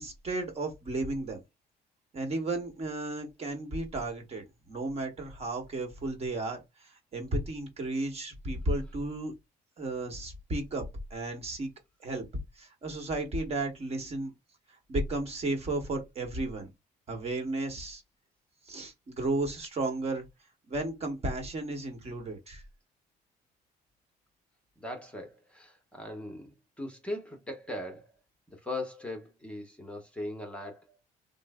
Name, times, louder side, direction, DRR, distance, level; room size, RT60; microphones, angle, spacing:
voice 1, 0.0-1.4 2.1-9.3 9.8-11.7 12.0-12.2 12.6-14.3 14.9-16.7 17.1-18.0 18.7-20.2 20.7-22.6, right 2 dB, 40° right, 1.1 m, -34 dB
voice 2, 24.8-26.5 26.8-28.1 28.6-31.0, left 1 dB, 5° left, 0.8 m, -39 dB
3.1 x 2.0 x 3.5 m
cardioid pair, 110°, 17 cm